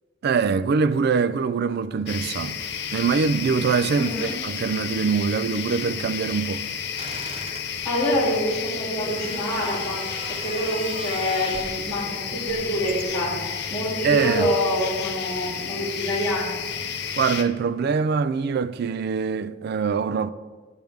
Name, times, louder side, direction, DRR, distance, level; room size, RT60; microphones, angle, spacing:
voice 1, 0.2-2.6 2.9-6.6 14.0-14.5 17.2-20.3, right 5 dB, 55° right, 0.3 m, -23 dB
sound 1, 2.1-17.4, left 7 dB, 60° left, 0.6 m, -32 dB
voice 2, 3.9-4.3 7.8-10.0 10.3-16.5, equal, 15° left, 2.9 m, -26 dB
sound 2, 7.0-7.7 9.0-11.8 12.5-13.3, right 2 dB, 30° right, 0.7 m, -39 dB
10.5 x 7.8 x 3.5 m
head